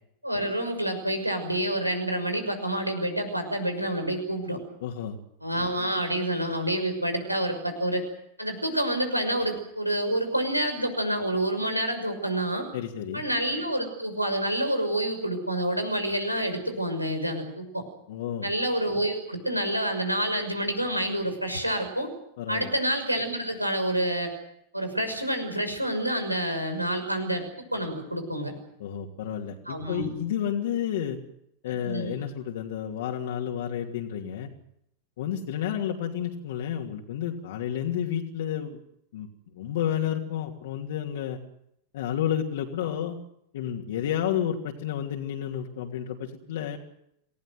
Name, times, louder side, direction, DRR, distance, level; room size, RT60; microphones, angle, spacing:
voice 1, 0.2-4.6 5.4-8.0 8.4-12.7 13.1-17.8 18.4-22.1 22.5-24.3 24.7-27.4 27.7-28.5 29.7-30.1 31.8-32.1, right 1 dB, 90° right, 6 dB, 6.2 m, -28 dB
voice 2, 4.8-5.2 12.7-13.2 18.1-18.5 22.4-22.7 28.8-31.2 31.6-34.5 35.2-38.8 39.1-39.3 39.5-41.4 41.9-43.2 43.5-46.8, left 9 dB, 55° left, 0 dB, 3.0 m, -31 dB
28.0 x 18.5 x 8.0 m, 0.75 s
figure-of-eight pair, 90°, 0 cm